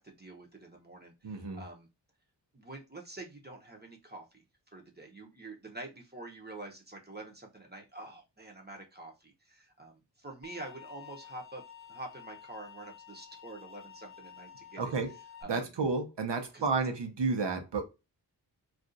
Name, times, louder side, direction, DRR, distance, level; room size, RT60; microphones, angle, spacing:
voice 1, 0.0-1.9 2.5-4.4 4.7-11.6 11.9-14.9 15.4-15.8 16.5-16.6, right 2 dB, 25° right, 0.7 m, -47 dB
voice 2, 1.2-1.6 14.8-15.1 15.4-17.8, right 4 dB, 75° right, 0.8 m, -31 dB
sound 1, 10.4-15.4, left 9 dB, 35° left, 0.4 m, -51 dB
2.5 x 2.3 x 3.8 m
wide cardioid pair, 80°, 42 cm